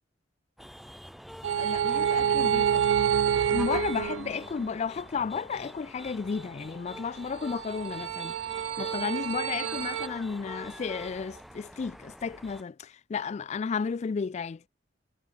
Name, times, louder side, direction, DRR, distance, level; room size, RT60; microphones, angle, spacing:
sound 1, 0.6-12.6, equal, ahead, 2.4 m, -45 dB
sound 2, 1.4-4.7 7.5-10.1, right 9 dB, 85° right, 0.3 m, -27 dB
voice 1, 1.6-2.9 3.5-14.7, left 5 dB, 35° left, 0.3 m, -33 dB
sound 3, 6.2-11.4, right 4 dB, 45° right, 4.8 m, -54 dB
head